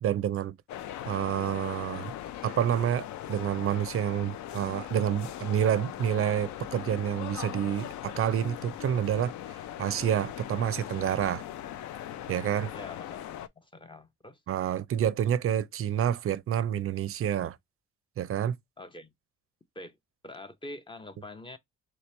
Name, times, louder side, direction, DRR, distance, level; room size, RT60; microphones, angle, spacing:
voice 1, 0.0-0.5 1.1-2.1 2.4-9.3 9.8-11.4 12.3-12.7 14.5-17.6 18.2-18.6, right 10 dB, 50° right, 0.4 m, -28 dB
sound 1, 0.7-13.5, left 11 dB, 70° left, 0.5 m, -40 dB
voice 2, 12.7-13.2 13.6-14.4 18.8-19.1 19.7-20.0 20.2-21.6, left 2 dB, 15° left, 0.5 m, -44 dB
3.2 x 3.0 x 3.1 m
cardioid pair, 90°, 30 cm